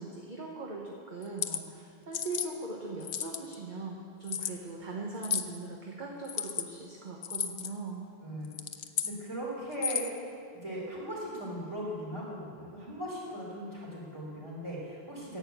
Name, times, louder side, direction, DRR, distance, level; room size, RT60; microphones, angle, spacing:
voice 1, 0.0-8.1, right 3 dB, 50° right, -1 dB, 1.3 m, -40 dB
sound 1, 1.2-1.6 2.1-2.5 3.0-3.5 4.3-4.5 5.2-5.5 6.2-6.7 7.2-7.7 8.4-9.1 9.7-10.2, left 8 dB, 65° left, 0.8 m, -33 dB
voice 2, 8.2-8.6 9.0-10.3 10.6-15.4, equal, 30° right, -6 dB, 3.8 m, -38 dB
11.5 x 8.4 x 8.1 m, 2.4 s
omnidirectional pair, 1.0 m